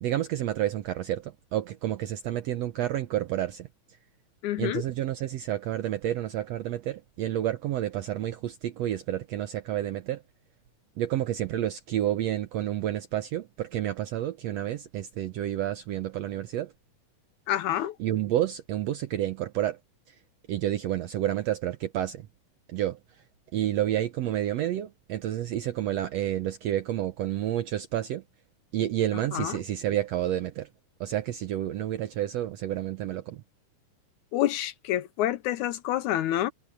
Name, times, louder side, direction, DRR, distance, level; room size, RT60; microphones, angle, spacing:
voice 1, 0.0-3.7 4.6-10.2 11.0-16.7 18.0-19.8 20.5-22.3 22.7-23.0 23.5-28.2 28.7-30.7 31.0-33.4, right 12 dB, 70° right, 1.6 m, -30 dB
voice 2, 4.4-4.8 17.5-17.9 29.3-29.6 34.3-36.5, left 13 dB, 75° left, 1.9 m, -28 dB
omnidirectional pair, 3.8 m